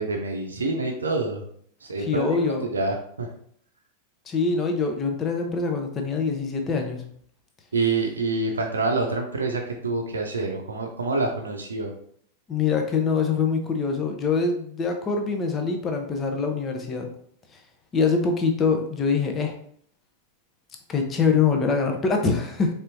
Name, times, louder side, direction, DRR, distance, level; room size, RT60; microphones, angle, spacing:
voice 1, 0.0-1.4 1.8-3.3 7.7-11.9, right 3 dB, 70° right, 2 dB, 0.6 m, -27 dB
voice 2, 2.1-2.6 4.3-7.0 12.5-17.1 17.9-19.5 20.9-22.7, left 5 dB, 25° left, 3 dB, 0.7 m, -24 dB
4.3 x 3.4 x 2.6 m, 0.63 s
figure-of-eight pair, 90°, 0 cm